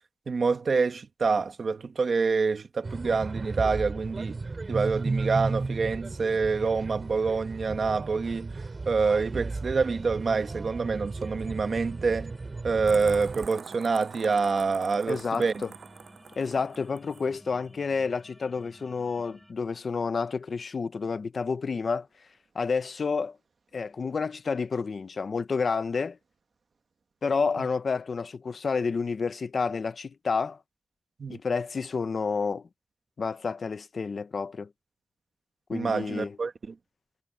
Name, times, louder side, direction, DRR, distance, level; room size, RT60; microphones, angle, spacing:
voice 1, 0.3-4.4 4.7-8.5 8.8-12.3 12.6-15.6 31.2-31.4 35.7-36.7, right 4 dB, 50° right, 1.3 m, -27 dB
sound 1, 2.8-13.5, right 3 dB, 35° right, 2.3 m, -34 dB
sound 2, 9.6-19.5, equal, ahead, 7.8 m, -55 dB
sound 3, 12.9-17.3, right 6 dB, 70° right, 6.2 m, -46 dB
voice 2, 15.1-15.7 16.4-22.1 22.5-23.4 23.7-26.2 27.2-30.6 31.3-32.7 33.2-34.7 35.7-36.4, left 5 dB, 50° left, 0.7 m, -29 dB
wide cardioid pair, 180°, 0 cm